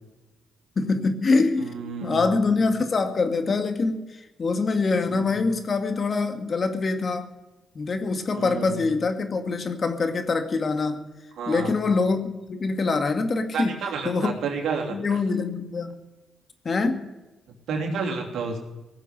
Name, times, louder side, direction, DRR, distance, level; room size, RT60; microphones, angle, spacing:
voice 1, 0.8-1.7 2.0-4.1 4.4-7.3 7.8-11.1 11.5-13.7 14.0-14.3 14.9-15.9 16.6-17.1, left 3 dB, 45° left, 7 dB, 2.2 m, -24 dB
voice 2, 1.6-2.6 5.1-5.4 8.3-8.8 11.4-11.8 13.5-15.2 17.7-18.6, right 5 dB, 80° right, 1 dB, 3.2 m, -31 dB
18.5 x 7.5 x 10.0 m, 1.1 s
cardioid pair, 65°, 0 cm